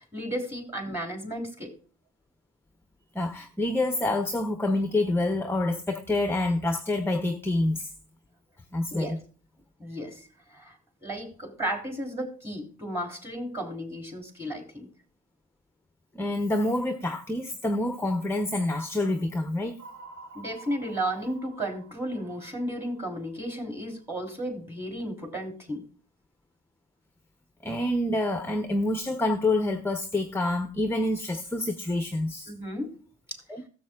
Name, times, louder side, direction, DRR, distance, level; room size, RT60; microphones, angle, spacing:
voice 1, 0.0-1.7 8.9-9.2 9.8-14.9 20.3-25.8 32.5-33.0 33.3-33.4, right 1 dB, 10° right, 3.1 m, -34 dB
voice 2, 3.1-7.9 8.7-9.2 16.1-19.8 27.6-32.5 33.5-33.6, left 2 dB, 10° left, 0.7 m, -27 dB
sound 1, 19.8-24.0, right 3 dB, 75° right, 2.1 m, -50 dB
15.0 x 7.5 x 2.3 m
cardioid pair, 90°, 30 cm